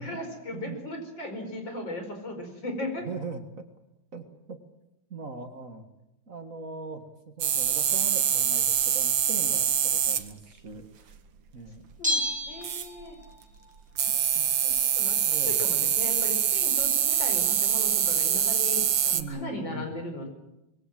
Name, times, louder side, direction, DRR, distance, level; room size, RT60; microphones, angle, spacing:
voice 1, 0.0-3.1 12.0-13.2 14.6-20.3, left 1 dB, 65° left, 5 dB, 5.7 m, -37 dB
voice 2, 3.1-3.4 4.1-4.6 5.1-5.9 6.3-11.1 11.5-11.9 14.1-14.5 15.2-15.6 19.1-19.9, right 3 dB, 45° right, 6 dB, 2.0 m, -40 dB
sound 1, 7.4-10.3 12.6-13.0 14.0-19.2, right 9 dB, 70° right, 1.9 m, -25 dB
Bell, 12.0-13.4 13.7-13.8, left 1 dB, 5° right, 1.9 m, -30 dB
25.0 x 21.0 x 7.7 m, 0.89 s
omnidirectional pair, 2.2 m